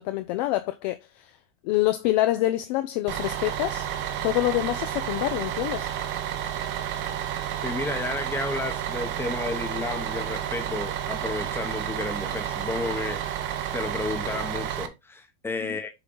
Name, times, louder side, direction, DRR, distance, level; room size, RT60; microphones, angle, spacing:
voice 1, 0.0-1.3 1.6-3.9 4.2-5.9 15.6-15.8, left 16 dB, 35° left, 0.4 m, -26 dB
Bus, 3.1-14.9, right 10 dB, 30° right, 0.7 m, -31 dB
voice 2, 7.6-13.2 13.7-15.9, left 3 dB, 5° left, 0.8 m, -32 dB
6.9 x 3.7 x 3.8 m
supercardioid pair, 155°, 38 cm